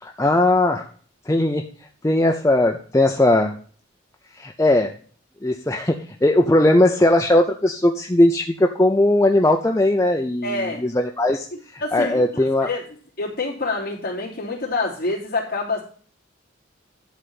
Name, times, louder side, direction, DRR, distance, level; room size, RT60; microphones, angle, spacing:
voice 1, 0.0-0.9 1.3-1.7 2.0-3.6 4.3-4.9 5.4-12.7, left 1 dB, 15° left, 3 dB, 0.6 m, -19 dB
voice 2, 10.4-10.8 11.8-12.8 13.2-15.8, left 3 dB, 50° left, -3 dB, 3.3 m, -27 dB
11.5 x 4.1 x 7.6 m, 0.43 s
head